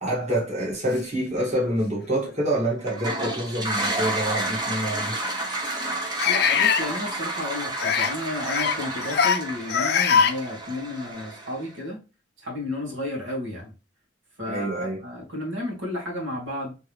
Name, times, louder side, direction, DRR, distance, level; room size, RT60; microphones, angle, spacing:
voice 1, 0.0-5.2 14.5-15.0, right 1 dB, 40° right, 1.8 m, -27 dB
sound 1, 1.4-1.5 2.2-2.4 4.0-4.1 6.2-6.8 7.8-8.1 8.4-8.8 9.0-9.4 9.7-10.3, left 7 dB, 55° left, 0.5 m, -22 dB
Toilet flush, 2.8-11.7, right 1 dB, 25° right, 1.0 m, -30 dB
voice 2, 6.3-12.0 12.4-13.7 14.4-16.7, left 1 dB, 80° right, 2.1 m, -32 dB
3.7 x 3.6 x 3.1 m
head